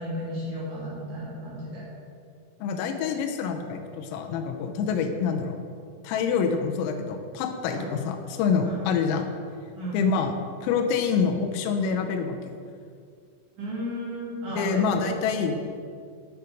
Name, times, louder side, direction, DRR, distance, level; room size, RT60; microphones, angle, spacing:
voice 1, 0.0-1.8 7.7-7.9 8.6-8.8 9.7-10.1 13.6-15.1 15.4-15.6, equal, 45° right, -7 dB, 3.7 m, -34 dB
voice 2, 2.6-5.6 6.1-9.3 9.9-10.3 10.6-12.6 14.5-15.6, left 5 dB, 85° left, 4 dB, 3.5 m, -26 dB
9.3 x 9.0 x 5.3 m, 2.3 s
omnidirectional pair, 6.0 m